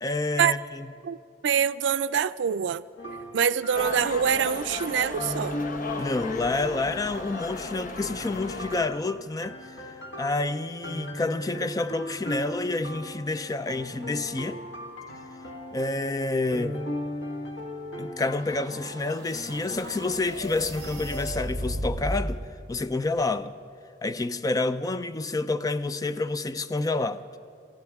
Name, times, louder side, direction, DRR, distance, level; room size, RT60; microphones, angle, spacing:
voice 1, 0.0-0.9 6.0-9.9 10.2-14.6 15.7-16.8 18.0-22.4 22.7-23.5 24.0-27.4, left 2 dB, 20° left, 0.4 m, -29 dB
voice 2, 1.4-2.8 3.3-5.6, right 7 dB, 90° right, 0.4 m, -25 dB
sound 1, 3.0-21.5, left 1 dB, 80° left, 1.5 m, -38 dB
sound 2, 3.7-8.9, left 3 dB, 50° left, 0.9 m, -36 dB
sound 3, 18.3-22.4, equal, 25° right, 5.2 m, -35 dB
26.5 x 15.0 x 3.5 m
head